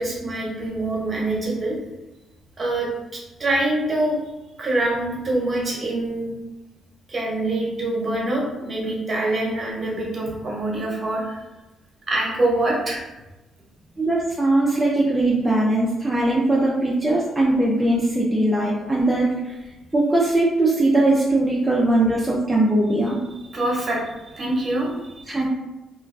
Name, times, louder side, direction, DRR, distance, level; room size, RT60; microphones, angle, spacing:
voice 1, 0.0-1.8 2.6-4.2 4.6-6.3 7.1-11.4 12.1-13.0 23.5-25.4, right 2 dB, 35° right, -3 dB, 1.0 m, -25 dB
voice 2, 14.0-19.5 19.9-23.2 25.3-25.5, right 2 dB, 10° right, -5 dB, 0.4 m, -20 dB
2.4 x 2.2 x 3.2 m, 1.0 s
cardioid pair, 90°, 0 cm